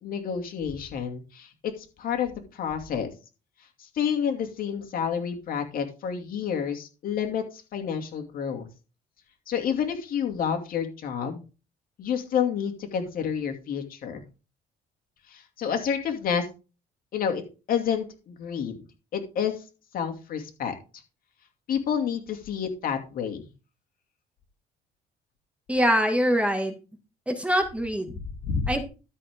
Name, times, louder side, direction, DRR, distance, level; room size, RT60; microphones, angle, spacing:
voice 1, 0.0-3.1 3.8-8.7 9.5-11.4 12.0-14.2 15.3-16.5 17.1-17.4 17.7-18.8 19.1-19.5 19.9-20.7 21.7-23.5 28.2-28.7, left 7 dB, 60° left, 5 dB, 2.5 m, -29 dB
voice 2, 25.7-26.7 27.3-28.2 28.7-28.9, equal, 5° right, 5 dB, 1.9 m, -24 dB
12.5 x 6.5 x 3.6 m, 0.32 s
cardioid pair, 110°, 17 cm